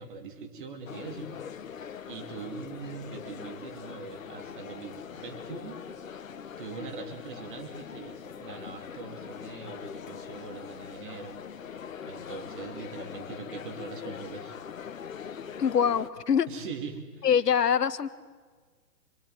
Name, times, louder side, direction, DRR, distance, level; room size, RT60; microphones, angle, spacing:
voice 1, 0.0-1.3 2.0-5.8 6.6-11.7 12.0-14.6 16.5-17.3, right 4 dB, 30° right, 6 dB, 2.9 m, -42 dB
sound 1, 0.9-16.1, left 7 dB, 50° left, 1.5 m, -42 dB
voice 2, 15.6-16.5 17.2-18.1, left 7 dB, 70° left, 12 dB, 1.7 m, -24 dB
27.0 x 22.5 x 9.3 m, 1.5 s
hypercardioid pair, 175°, 50 cm